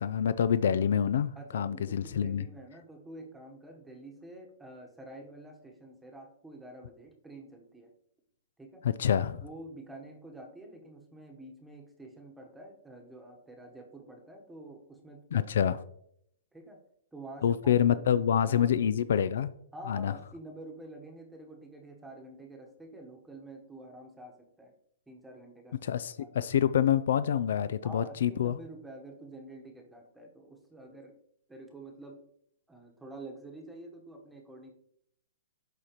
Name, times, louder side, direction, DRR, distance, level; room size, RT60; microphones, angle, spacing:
voice 1, 0.0-2.4 8.8-9.4 15.3-15.8 17.4-19.5 19.9-20.1 25.8-28.6, left 9 dB, 70° left, 14 dB, 0.3 m, -27 dB
voice 2, 1.3-7.9 8.6-8.9 9.4-15.5 16.5-16.8 17.1-19.0 19.7-24.7 25.1-25.8 26.2-26.3 27.8-31.1 31.5-32.2 32.7-34.7, right 1 dB, 5° right, 2 dB, 1.1 m, -48 dB
11.5 x 4.2 x 3.0 m, 0.71 s
hypercardioid pair, 150°, 0 cm